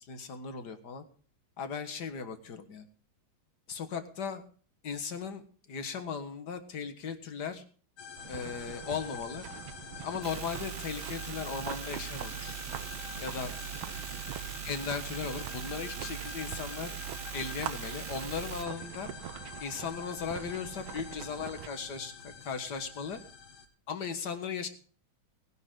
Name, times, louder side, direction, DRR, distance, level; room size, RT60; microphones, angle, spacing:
voice 1, 0.1-1.0 1.6-2.9 3.7-4.4 4.8-7.6 8.3-9.5 10.0-12.6 13.2-13.5 14.6-17.0 17.3-19.1 19.6-23.2 23.9-24.7, left 6 dB, 55° left, 8 dB, 2.0 m, -37 dB
sound 1, 8.0-23.7, left 6 dB, 80° left, 2.4 m, -47 dB
sound 2, 8.2-21.7, right 10 dB, 85° right, 1.6 m, -44 dB
sound 3, 10.2-18.6, right 10 dB, 50° right, 0.9 m, -41 dB
19.0 x 10.5 x 3.8 m, 0.42 s
omnidirectional pair, 2.2 m